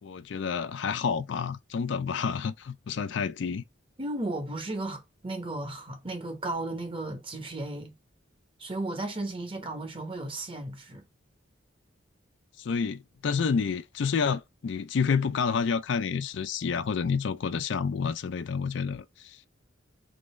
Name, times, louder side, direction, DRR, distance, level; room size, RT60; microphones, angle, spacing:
voice 1, 0.0-3.6 12.6-19.4, left 6 dB, 65° left, 0.4 m, -29 dB
voice 2, 4.0-8.0 8.6-11.0, right 2 dB, 25° right, 0.9 m, -35 dB
3.8 x 3.1 x 3.2 m
head